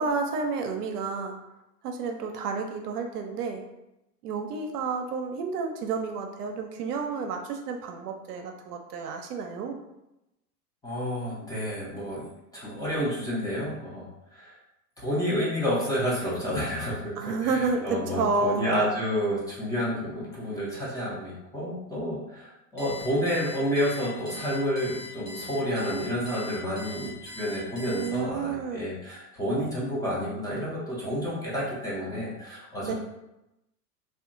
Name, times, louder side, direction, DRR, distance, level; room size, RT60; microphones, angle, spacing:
voice 1, 0.0-1.4 1.8-3.6 4.2-9.8 17.2-18.6 27.9-28.8 32.8-32.9, right 4 dB, 70° right, 3 dB, 0.6 m, -30 dB
voice 2, 10.8-12.3 12.5-14.6 15.0-32.9, equal, 10° left, -7 dB, 0.5 m, -30 dB
Alarm, 22.8-28.4, left 3 dB, 25° left, 0.9 m, -42 dB
2.7 x 2.3 x 2.5 m, 0.91 s
hypercardioid pair, 95°, 49 cm